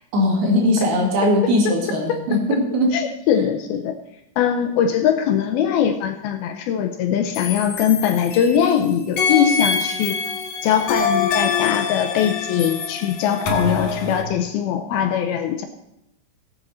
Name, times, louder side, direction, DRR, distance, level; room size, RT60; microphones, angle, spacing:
voice 1, 0.1-3.0, left 1 dB, 65° right, 0 dB, 4.1 m, -19 dB
voice 2, 2.9-4.0 4.4-10.2 10.6-15.7, left 9 dB, 75° left, 5 dB, 2.4 m, -21 dB
sound 1, 7.3-8.7 9.2-14.2, left 5 dB, 55° left, 2.5 m, -24 dB
18.0 x 8.0 x 4.3 m, 0.82 s
omnidirectional pair, 4.9 m